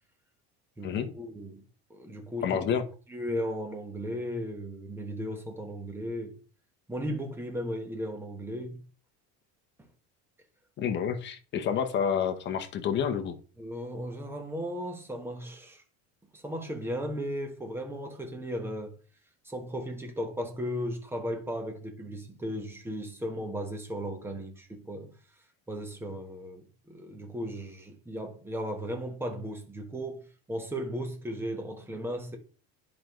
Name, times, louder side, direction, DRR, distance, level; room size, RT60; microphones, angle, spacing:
voice 1, 0.8-1.6 1.9-2.5 3.1-6.3 6.9-8.8 13.6-15.8 16.3-18.9 19.4-25.1 25.7-32.4, equal, 5° right, 1.1 m, -36 dB
voice 2, 2.4-2.9 10.8-13.4, left 7 dB, 35° left, 1.0 m, -29 dB
10.0 x 5.2 x 3.1 m
cardioid pair, 150°, 32 cm